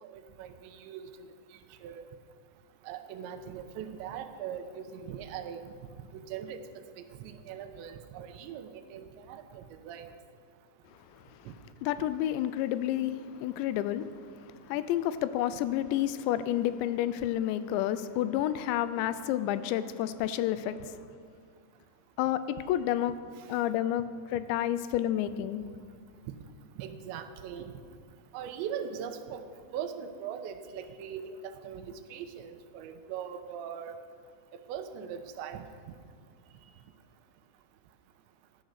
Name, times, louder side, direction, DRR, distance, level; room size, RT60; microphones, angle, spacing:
voice 1, 0.0-1.3 1.8-2.0 2.8-5.6 6.1-6.6 7.0-10.1 11.5-11.6 23.4-23.5 26.8-27.7 28.3-29.5 29.7-34.0 34.5-35.6, right 8 dB, 85° right, 8 dB, 3.0 m, -40 dB
voice 2, 11.8-21.0 22.2-23.2 23.5-25.6, left 12 dB, 85° left, 13 dB, 2.8 m, -30 dB
16.0 x 11.5 x 6.5 m, 2.1 s
omnidirectional pair, 5.2 m